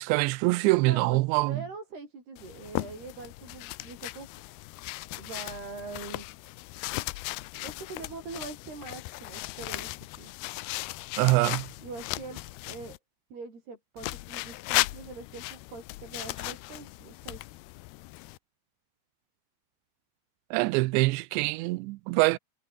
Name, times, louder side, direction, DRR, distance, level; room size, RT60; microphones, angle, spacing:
voice 1, 0.0-1.6 11.2-11.7 20.5-22.4, right 22 dB, 90° right, 2.9 m, -24 dB
voice 2, 0.8-4.3 5.2-6.3 7.6-10.3 11.8-13.0 13.3-17.4, right 4 dB, 60° right, 10.0 m, -43 dB
sound 1, 2.4-13.0 14.0-18.4, left 20 dB, 80° left, 2.4 m, -36 dB
omnidirectional pair, 5.1 m